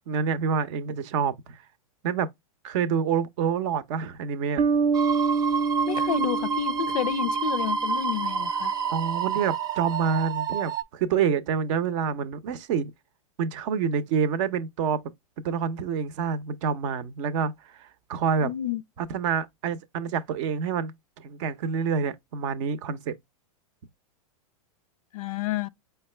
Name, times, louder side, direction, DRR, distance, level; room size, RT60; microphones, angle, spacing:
voice 1, 0.1-1.6 2.0-2.3 2.6-4.6 8.9-12.9 13.4-15.0 15.4-17.5 17.8-18.5 19.0-23.1, right 6 dB, 55° right, 0.7 m, -27 dB
Bass guitar, 4.6-8.1, right 5 dB, 80° right, 1.0 m, -27 dB
sound 1, 4.9-10.8, right 5 dB, 20° right, 0.4 m, -29 dB
voice 2, 5.9-8.7 18.4-18.8 25.1-25.7, left 11 dB, 75° left, 0.4 m, -30 dB
5.1 x 2.2 x 3.3 m
hypercardioid pair, 120°, 19 cm